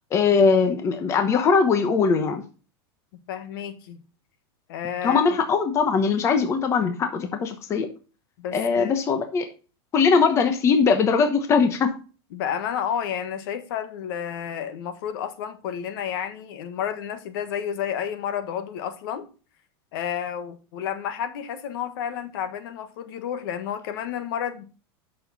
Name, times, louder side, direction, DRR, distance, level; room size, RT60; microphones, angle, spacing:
voice 1, 0.1-2.4 5.0-7.9 8.5-9.5 9.9-11.9, left 5 dB, 20° left, 0.9 m, -21 dB
voice 2, 3.3-4.0 4.7-5.2 8.4-9.0 12.3-19.3 19.9-24.6, left 8 dB, 60° left, 1.3 m, -31 dB
8.4 x 6.5 x 4.0 m
supercardioid pair, 160°, 13 cm